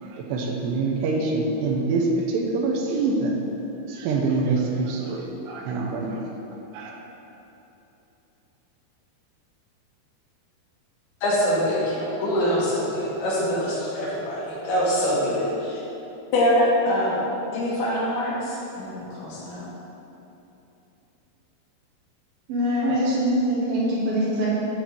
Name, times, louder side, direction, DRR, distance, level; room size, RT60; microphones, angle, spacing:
voice 1, 0.0-3.4 3.9-6.3 6.7-6.9, right 3 dB, 80° right, 0 dB, 2.8 m, -25 dB
voice 2, 11.2-15.8 16.3-17.2 17.5-19.6, equal, 70° left, -6 dB, 3.1 m, -24 dB
voice 3, 22.5-24.5, equal, 65° right, -7 dB, 2.9 m, -23 dB
8.3 x 4.1 x 6.1 m, 2.9 s
omnidirectional pair, 4.9 m